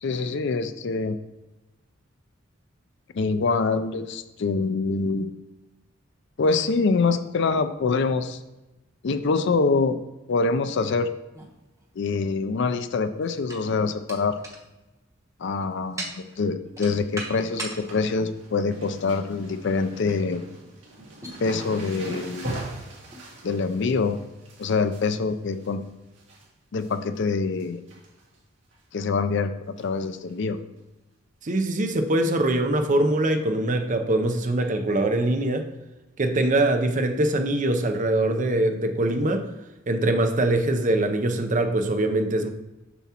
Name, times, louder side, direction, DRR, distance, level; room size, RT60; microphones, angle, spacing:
voice 1, 0.0-1.2 3.2-5.3 6.4-8.4 9.0-10.0 10.3-11.1 12.0-14.4 15.4-20.4 21.4-22.5 23.4-24.2 24.6-25.8 26.7-27.8 28.9-30.6, left 4 dB, 60° left, 10 dB, 0.4 m, -25 dB
sound 1, 11.3-12.4 13.1-17.9 18.4-18.5 19.6-19.8 20.1-20.3 21.2-21.4 22.2-22.3 23.1-23.2, right 2 dB, 15° right, 1.0 m, -39 dB
sound 2, 16.6-17.0 17.2-26.4 26.8-27.2 27.5-28.4 28.7-28.8 29.8-30.0 30.3-30.4 30.8-30.9 32.4-32.5 33.3-33.4, right 1 dB, 65° right, 2.1 m, -41 dB
voice 2, 31.4-35.7 36.2-39.4 39.9-42.5, right 1 dB, 40° right, 6 dB, 0.6 m, -23 dB
7.0 x 6.0 x 2.9 m, 1.0 s
head